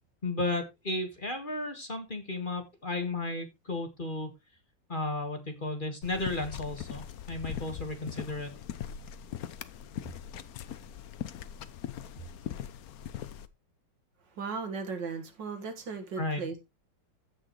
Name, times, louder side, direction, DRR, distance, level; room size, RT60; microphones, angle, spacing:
voice 1, 0.2-4.3 4.9-8.5 16.2-16.4, left 2 dB, 30° left, 1.8 m, -34 dB
sound 1, 6.0-13.5, left 9 dB, 65° left, 1.1 m, -41 dB
voice 2, 14.4-16.6, right 5 dB, 80° right, 2.4 m, -36 dB
15.5 x 6.2 x 3.1 m
omnidirectional pair, 1.9 m